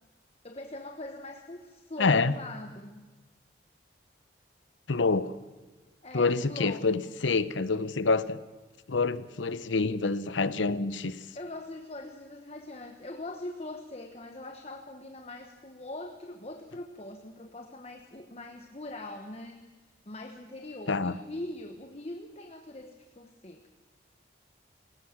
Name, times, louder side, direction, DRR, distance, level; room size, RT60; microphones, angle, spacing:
voice 1, 0.4-3.1 6.0-6.9 11.3-19.6 20.1-23.7, left 2 dB, 35° left, 1.1 m, -42 dB
voice 2, 2.0-2.3 4.9-5.3 6.1-8.4 8.9-11.2 20.9-21.2, left 4 dB, 85° left, 0.9 m, -27 dB
20.0 x 18.0 x 7.3 m
head